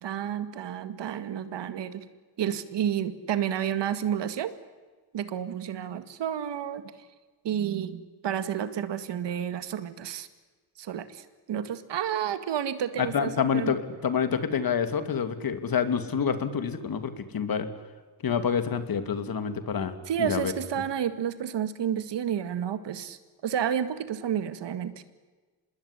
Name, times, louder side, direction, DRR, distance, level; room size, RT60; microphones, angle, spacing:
voice 1, 0.0-2.0 2.4-4.5 5.1-6.8 7.4-10.3 10.8-13.7 20.1-25.0, right 9 dB, 70° right, 11 dB, 2.1 m, -30 dB
voice 2, 13.0-17.7 18.2-20.5, left 7 dB, 50° left, 10 dB, 2.6 m, -28 dB
25.5 x 20.5 x 10.0 m, 1.3 s
cardioid pair, 95°, 44 cm